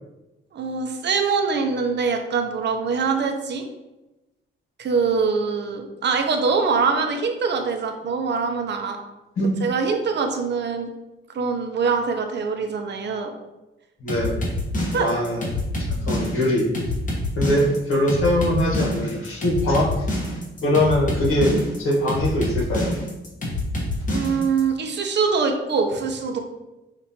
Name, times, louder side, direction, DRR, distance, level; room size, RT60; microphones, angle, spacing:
voice 1, 0.5-3.6 4.8-9.0 9.6-10.9 11.3-13.3 14.9-15.1 24.1-26.4, right 5 dB, 55° right, 5 dB, 0.6 m, -23 dB
voice 2, 14.0-14.4 15.0-15.4 15.8-16.7 17.4-20.1 20.6-22.9, left 1 dB, 85° left, -3 dB, 1.4 m, -22 dB
sound 1, 14.1-24.6, left 1 dB, 40° left, 1.1 m, -26 dB
5.9 x 2.5 x 2.8 m, 1.0 s
wide cardioid pair, 135°, 21 cm